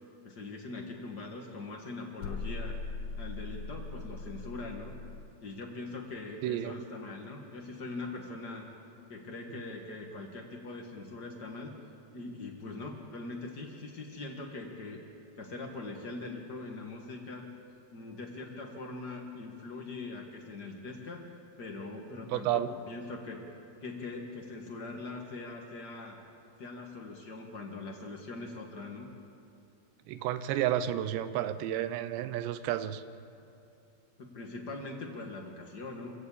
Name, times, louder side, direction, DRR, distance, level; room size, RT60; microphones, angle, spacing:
voice 1, 0.2-2.8 3.1-4.9 5.4-8.7 9.1-11.7 12.1-15.0 15.4-17.4 17.9-21.3 21.6-23.4 23.8-26.2 26.6-29.1 34.2-36.1, left 3 dB, 85° left, 1 dB, 0.9 m, -42 dB
sound 1, 2.2-5.3, left 4 dB, 65° left, 2.8 m, -39 dB
voice 2, 6.4-6.7 22.3-22.7 30.1-33.0, right 12 dB, 85° right, 13 dB, 3.0 m, -31 dB
26.0 x 17.0 x 7.4 m, 2.8 s
omnidirectional pair, 4.9 m